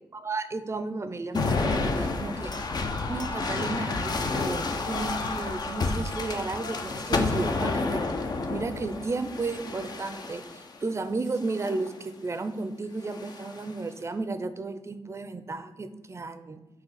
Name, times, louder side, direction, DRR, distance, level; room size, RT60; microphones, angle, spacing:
voice 1, 0.1-2.5 3.1-8.1 8.5-16.6, right 3 dB, 30° right, 11 dB, 0.5 m, -33 dB
sound 1, 1.3-10.7 11.4-11.9 13.0-13.7, left 3 dB, 50° left, 0.7 m, -30 dB
6.2 x 2.8 x 5.7 m, 1.1 s
cardioid pair, 75°, 9 cm